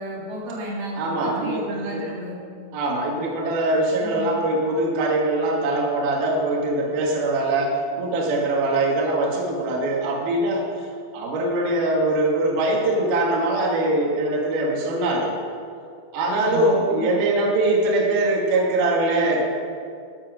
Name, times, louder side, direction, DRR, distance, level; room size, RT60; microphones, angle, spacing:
voice 1, 0.0-2.4 4.0-4.3 16.3-17.1, equal, 85° right, -4 dB, 4.4 m, -32 dB
voice 2, 1.0-2.0 2.7-10.7 11.1-15.4 16.1-19.4, right 2 dB, 65° right, -2 dB, 3.2 m, -22 dB
14.5 x 6.9 x 6.0 m, 2.3 s
omnidirectional pair, 4.9 m